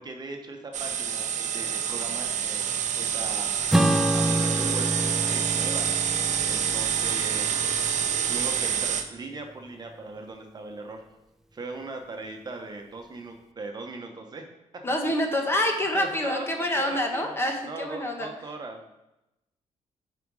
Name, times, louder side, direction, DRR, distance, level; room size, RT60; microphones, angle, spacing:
voice 1, 0.0-3.5 4.1-4.9 5.3-5.9 6.5-7.5 8.2-11.0 11.5-14.4 15.9-17.4 17.6-18.9, right 3 dB, 35° right, 3 dB, 1.1 m, -39 dB
sound 1, 0.7-9.1, right 8 dB, 85° right, 0.7 m, -27 dB
Acoustic guitar / Strum, 3.7-8.4, right 1 dB, 5° right, 0.5 m, -28 dB
voice 2, 14.8-18.3, left 1 dB, 20° left, 3 dB, 1.2 m, -27 dB
9.2 x 5.0 x 4.9 m, 0.93 s
cardioid pair, 125°, 12 cm